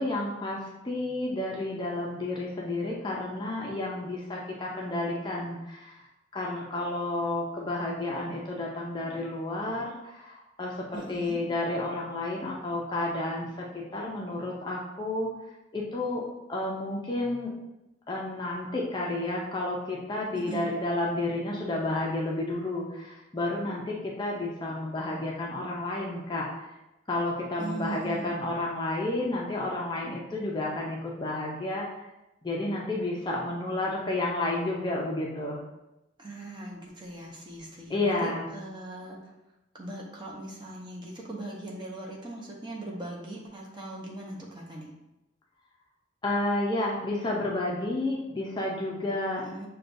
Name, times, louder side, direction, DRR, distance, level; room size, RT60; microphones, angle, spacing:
voice 1, 0.0-6.0 6.3-15.3 15.7-16.2 16.5-17.5 18.1-26.5 27.1-32.0 32.4-35.6 37.9-38.5 46.2-49.4, left 2 dB, 25° left, -3 dB, 0.4 m, -31 dB
voice 2, 10.9-11.4 20.3-20.7 27.6-28.3 36.2-39.3 39.7-44.9 49.4-49.7, right 1 dB, 25° right, -2 dB, 0.7 m, -40 dB
6.4 x 2.3 x 2.5 m, 0.96 s
head